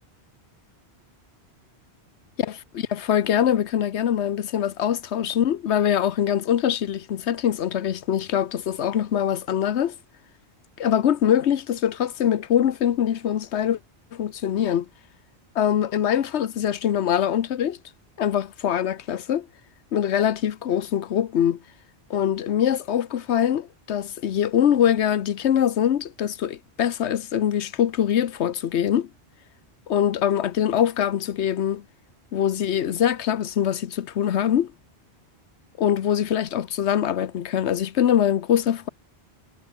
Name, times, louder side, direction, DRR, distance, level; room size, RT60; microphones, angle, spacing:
voice 1, 2.7-9.9 10.8-13.8 14.1-14.9 15.5-17.8 18.2-19.5 19.9-21.6 22.1-29.1 29.9-31.8 32.3-34.7 35.8-38.9, left 9 dB, 90° left, 1.1 m, -23 dB
omnidirectional pair, 1.1 m